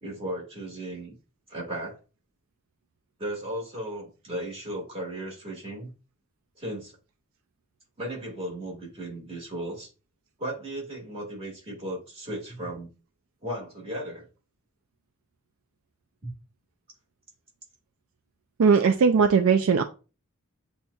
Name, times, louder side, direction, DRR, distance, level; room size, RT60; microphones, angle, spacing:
voice 1, 0.0-1.2 1.5-2.0 3.2-5.9 6.6-6.9 8.0-9.9 10.4-12.9 13.4-14.3, right 1 dB, 30° right, -2 dB, 2.0 m, -35 dB
voice 2, 18.6-19.8, right 5 dB, 70° right, 5 dB, 0.4 m, -19 dB
7.6 x 2.6 x 2.3 m, 0.34 s
head